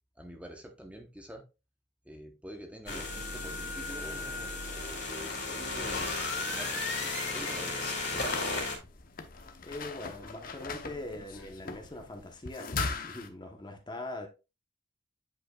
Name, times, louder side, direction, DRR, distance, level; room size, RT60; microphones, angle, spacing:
voice 1, 0.2-1.4 2.1-8.6, equal, 5° right, 0.8 m, -47 dB
sound 1, 2.9-8.8, left 3 dB, 65° left, 2.3 m, -34 dB
sound 2, 8.1-13.3, left 4 dB, 50° left, 0.8 m, -39 dB
voice 2, 9.6-14.3, left 2 dB, 25° left, 0.9 m, -42 dB
9.0 x 5.2 x 2.3 m
head